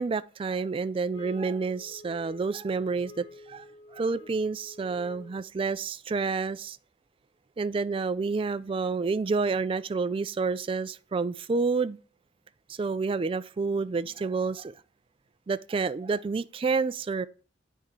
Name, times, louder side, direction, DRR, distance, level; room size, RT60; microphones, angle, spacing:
voice 1, 0.0-3.7 3.9-6.8 7.6-12.0 12.7-14.7 15.5-17.3, right 4 dB, 30° right, 0.3 m, -29 dB
sound 1, 1.1-5.5, left 2 dB, 80° left, 2.0 m, -49 dB
8.2 x 3.6 x 4.5 m
head